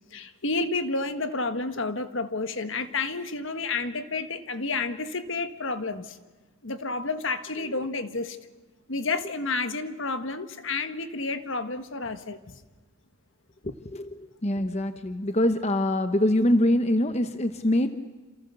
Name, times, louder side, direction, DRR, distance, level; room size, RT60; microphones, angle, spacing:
voice 1, 0.1-6.2 6.6-8.4 8.9-12.6 13.6-13.7, left 3 dB, 65° left, 10 dB, 1.5 m, -30 dB
voice 2, 14.4-18.0, left 1 dB, 30° left, 9 dB, 0.9 m, -24 dB
28.0 x 28.0 x 6.9 m, 1.2 s
head